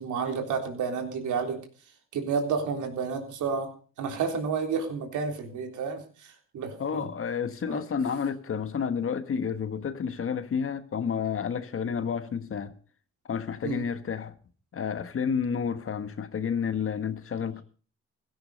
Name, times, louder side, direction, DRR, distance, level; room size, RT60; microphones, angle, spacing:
voice 1, 0.0-1.6 2.1-3.7 4.0-7.1 7.7-7.8 13.6-13.8, right 5 dB, 75° right, 3.7 m, -30 dB
voice 2, 6.8-12.7 13.3-14.3 14.7-17.6, left 6 dB, 45° left, 1.5 m, -30 dB
16.0 x 12.5 x 5.4 m
cardioid pair, 90°, 30 cm